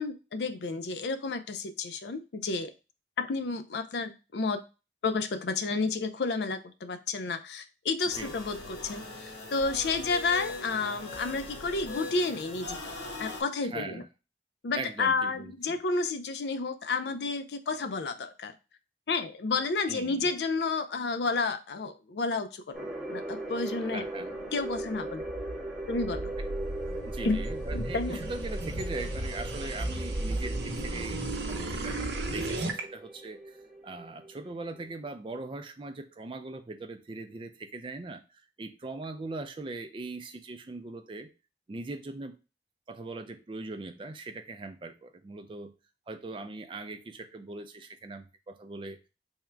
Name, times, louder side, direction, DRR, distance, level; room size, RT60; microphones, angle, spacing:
voice 1, 0.0-2.7 3.2-4.6 5.0-12.9 13.2-14.0 14.6-18.5 19.1-24.1 24.5-25.2 25.9-26.3 27.2-27.4 27.7-28.2, left 4 dB, 70° left, 9 dB, 0.4 m, -31 dB
sound 1, 8.1-13.4, left 2 dB, 90° left, 1.2 m, -41 dB
voice 2, 13.6-14.1 14.7-15.8 19.9-20.3 23.8-24.3 26.4-26.5 27.1-31.2 31.5-33.6 33.8-41.3 41.7-42.4 42.9-45.7 46.1-49.0, right 3 dB, 30° right, 7 dB, 0.4 m, -40 dB
sound 2, 22.7-34.9, right 1 dB, ahead, 0.9 m, -40 dB
sound 3, 24.8-32.8, right 2 dB, 70° right, 0.7 m, -34 dB
3.6 x 2.1 x 4.4 m, 0.31 s
head